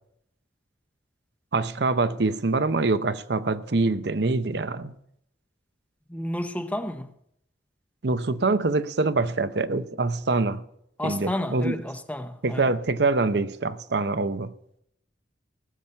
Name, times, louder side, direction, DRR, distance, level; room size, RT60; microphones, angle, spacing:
voice 1, 1.5-4.9 8.0-10.6 11.0-11.7 12.4-14.5, right 3 dB, 60° right, 0.7 m, -25 dB
voice 2, 6.1-7.1 11.0-12.7, left 1 dB, 10° left, 0.7 m, -31 dB
19.5 x 7.3 x 5.5 m
head